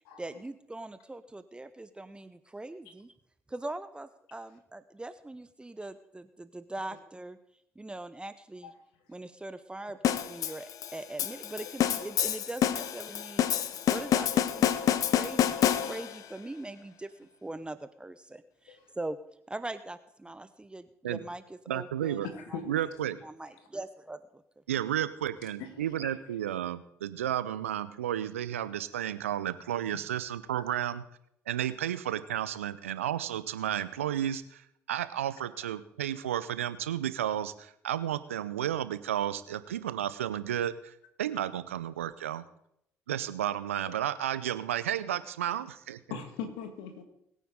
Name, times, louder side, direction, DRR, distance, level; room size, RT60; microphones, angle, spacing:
voice 1, 0.2-3.1 3.5-7.4 7.8-8.7 9.1-13.5 13.9-19.2 19.5-22.6 23.2-24.6, right 2 dB, 15° right, 12 dB, 0.8 m, -42 dB
sound 1, 10.0-16.3, left 10 dB, 55° left, 0.8 m, -28 dB
voice 2, 21.7-22.3 22.7-23.2 24.7-31.0 31.5-42.5 43.1-46.0, right 11 dB, 85° right, 15 dB, 0.6 m, -32 dB
voice 3, 22.3-22.7 25.6-25.7 26.0-26.1 45.5-45.6 46.1-47.0, left 6 dB, 75° left, 5 dB, 1.8 m, -40 dB
21.0 x 9.2 x 3.8 m, 0.75 s
hypercardioid pair, 50°, 7 cm